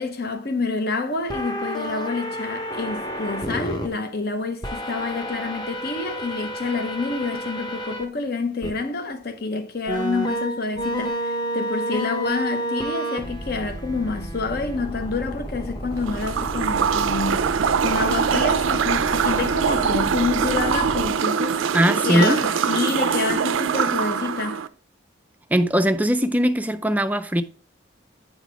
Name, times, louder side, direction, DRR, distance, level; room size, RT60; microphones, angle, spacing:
voice 1, 0.0-17.4 17.8-21.6 21.9-24.6, left 4 dB, 50° left, 0.9 m, -28 dB
sound 1, 1.3-3.9 4.6-8.0 8.6-8.7 9.9-21.1, right 1 dB, 20° left, 0.9 m, -31 dB
sound 2, 16.0-24.7, right 6 dB, 75° right, 0.4 m, -23 dB
voice 2, 21.7-22.4 25.5-27.4, equal, 10° right, 0.4 m, -20 dB
9.0 x 4.0 x 4.7 m
head